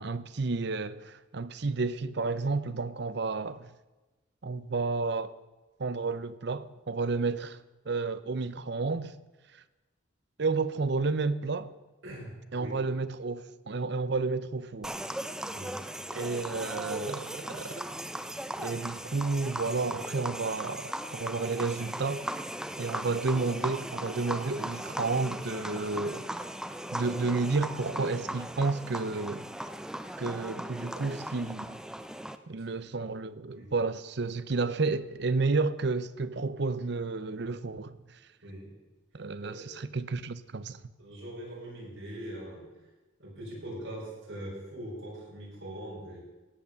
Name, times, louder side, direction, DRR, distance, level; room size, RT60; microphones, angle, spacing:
voice 1, 0.0-3.7 4.4-5.3 5.8-7.6 7.9-9.2 10.4-11.7 12.5-15.0 16.1-17.8 18.6-22.3 22.8-26.3 26.9-29.5 30.2-31.8 32.5-38.2 39.1-40.8, right 3 dB, 60° right, 0.7 m, -31 dB
voice 2, 12.0-12.8 15.5-15.9 32.7-32.8 33.5-33.7 38.4-38.8 39.1-39.6 41.0-42.7 43.2-46.2, right 1 dB, 80° right, 6.4 m, -42 dB
sound 1, 14.8-32.4, right 1 dB, 5° right, 0.5 m, -38 dB
17.0 x 8.5 x 7.0 m
head